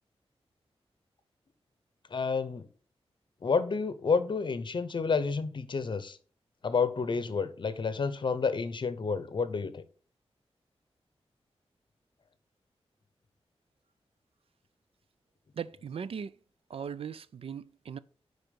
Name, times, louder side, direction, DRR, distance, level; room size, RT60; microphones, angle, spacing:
voice 1, 2.1-2.7 3.4-6.2 6.6-9.8, left 5 dB, 50° left, 0.8 m, -30 dB
voice 2, 15.5-16.3 16.7-18.0, right 7 dB, 60° right, 0.4 m, -38 dB
10.0 x 4.0 x 5.2 m
wide cardioid pair, 155°, 11 cm